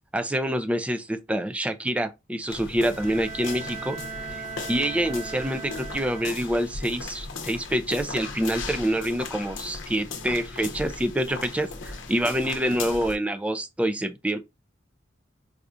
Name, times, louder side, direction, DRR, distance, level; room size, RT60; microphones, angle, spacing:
voice 1, 0.1-4.0 4.7-14.4, right 1 dB, 5° right, 0.3 m, -26 dB
sound 1, 2.5-13.2, left 4 dB, 70° left, 0.8 m, -37 dB
Bowed string instrument, 2.8-6.7, right 6 dB, 75° right, 2.5 m, -39 dB
4.8 x 2.3 x 2.5 m
head